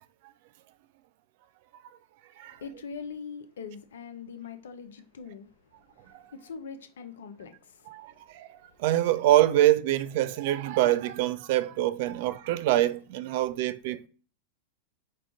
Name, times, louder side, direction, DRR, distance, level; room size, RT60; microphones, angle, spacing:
voice 1, 2.6-5.5 6.0-7.9, left 6 dB, 65° left, 0.6 m, -42 dB
voice 2, 7.9-8.5 8.8-14.1, right 14 dB, 50° right, 0.3 m, -25 dB
4.7 x 2.4 x 3.6 m
figure-of-eight pair, 90°, 0 cm